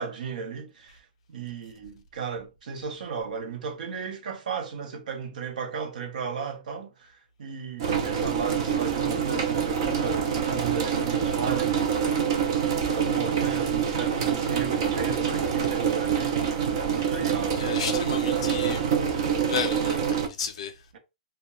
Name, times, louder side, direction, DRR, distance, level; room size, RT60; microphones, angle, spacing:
voice 1, 0.0-16.4 16.8-17.7, right 6 dB, 65° right, 0.7 m, -35 dB
sound 1, 7.8-20.3, right 7 dB, 30° right, 0.3 m, -26 dB
voice 2, 17.5-18.9 19.4-20.9, left 7 dB, 40° left, 0.4 m, -33 dB
2.2 x 2.1 x 2.9 m
hypercardioid pair, 175°, 5 cm